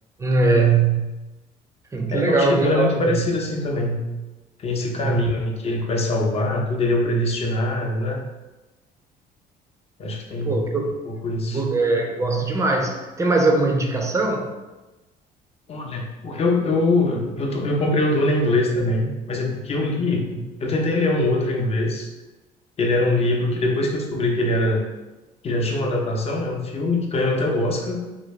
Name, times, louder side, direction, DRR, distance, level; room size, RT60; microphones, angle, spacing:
voice 1, 0.2-1.1 1.9-3.0 5.0-5.2 10.4-10.9 11.4-14.5, right 3 dB, 15° right, 2 dB, 0.5 m, -21 dB
voice 2, 2.1-4.0 4.6-8.2 10.0-10.6 11.1-11.6 15.7-22.1 22.8-24.8 25.4-28.0, left 2 dB, 35° left, 0 dB, 0.6 m, -23 dB
3.1 x 2.5 x 3.1 m, 1.1 s
cardioid pair, 110°, 17 cm